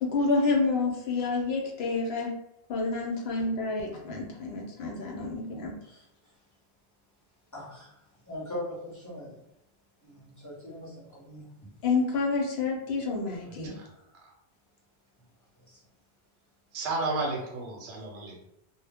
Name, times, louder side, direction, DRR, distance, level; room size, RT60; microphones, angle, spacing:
voice 1, 0.0-2.3 2.7-5.7 11.8-13.7, left 3 dB, 75° left, 0 dB, 0.9 m, -28 dB
voice 2, 7.5-7.9 8.3-9.3 10.0-11.4 15.7-15.8, left 1 dB, 20° left, -7 dB, 0.8 m, -40 dB
voice 3, 16.7-18.4, right 3 dB, 80° right, -1 dB, 0.9 m, -32 dB
2.1 x 2.1 x 3.3 m, 0.81 s
omnidirectional pair, 1.1 m